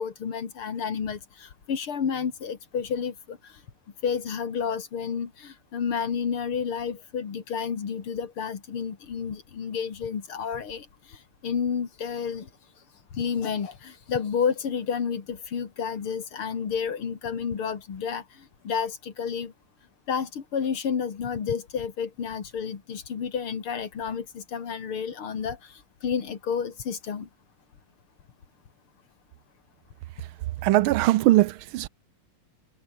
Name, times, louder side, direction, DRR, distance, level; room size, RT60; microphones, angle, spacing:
voice 1, 0.0-3.4 4.0-11.2 11.4-12.5 13.1-18.2 18.6-19.5 20.1-27.3, left 6 dB, 85° left, 3.2 m, -30 dB
voice 2, 30.6-31.9, right 16 dB, 80° right, 1.5 m, -21 dB
omnidirectional pair, 2.3 m